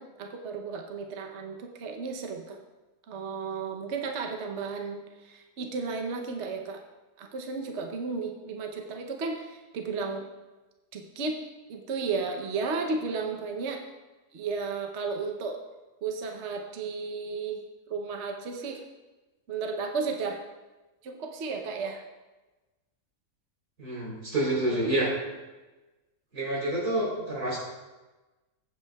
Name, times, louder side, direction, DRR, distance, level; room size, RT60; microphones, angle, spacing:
voice 1, 0.0-2.6 3.1-6.8 7.2-10.3 10.9-11.4 11.7-13.8 14.3-15.6 16.0-17.6 17.9-18.8 19.5-20.4 21.0-22.0 24.7-24.9, right 4 dB, 55° right, 2 dB, 1.0 m, -33 dB
voice 2, 23.8-25.1 26.3-27.6, right 1 dB, 85° right, -4 dB, 4.1 m, -28 dB
15.5 x 8.6 x 2.3 m, 1.2 s
omnidirectional pair, 1.6 m